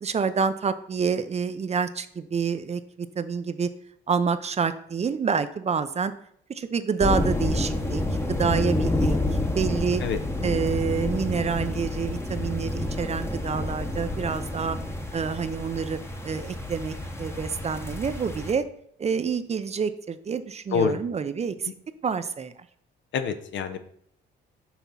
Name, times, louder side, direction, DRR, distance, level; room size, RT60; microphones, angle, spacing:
voice 1, 0.0-3.7 4.1-6.1 6.5-8.0 8.3-10.0 10.4-14.8 15.1-18.7 19.0-21.7 22.0-22.5, right 6 dB, 35° right, 11 dB, 0.5 m, -28 dB
sound 1, 7.0-18.5, left 1 dB, 15° left, 0.9 m, -29 dB
voice 2, 23.1-23.8, left 6 dB, 70° left, 9 dB, 0.7 m, -26 dB
5.8 x 3.5 x 5.5 m, 0.66 s
cardioid pair, 90°, 20 cm